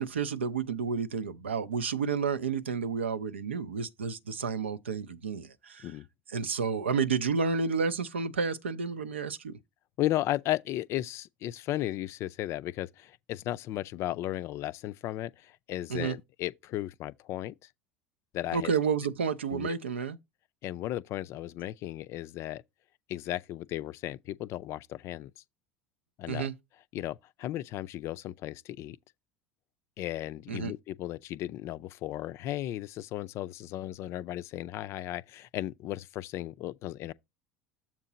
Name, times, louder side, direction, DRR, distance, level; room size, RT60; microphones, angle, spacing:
voice 1, 0.0-5.9 6.3-9.6 15.9-16.2 18.5-20.2 26.3-26.5 30.5-30.7, right 5 dB, 85° right, 0.5 m, -30 dB
voice 2, 10.0-17.7 18.3-18.7 19.5-19.8 20.6-22.6 23.1-25.3 26.2-26.5 26.9-29.0 30.0-37.1, left 14 dB, 50° left, 0.4 m, -35 dB
7.4 x 4.5 x 3.9 m
figure-of-eight pair, 70°, 6 cm